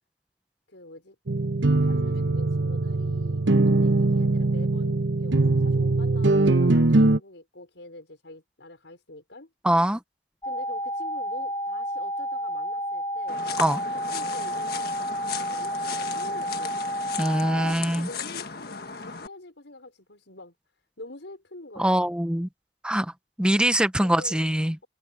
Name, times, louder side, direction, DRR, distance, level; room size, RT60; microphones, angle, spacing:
voice 1, 0.7-1.2 1.8-9.5 10.4-13.4 13.8-16.9 17.6-20.5 21.0-22.2 24.0-24.5, left 2 dB, 85° left, 5.4 m, -45 dB
sound 1, 1.3-7.2, right 2 dB, 85° right, 1.1 m, -21 dB
voice 2, 9.6-10.0 13.6-13.8 17.2-18.1 21.8-22.5 22.8-23.1 23.4-24.7, right 1 dB, 5° right, 0.8 m, -23 dB
sound 2, 10.4-17.7, equal, 15° left, 1.6 m, -31 dB
sound 3, 13.3-19.3, left 6 dB, 55° left, 1.6 m, -36 dB
head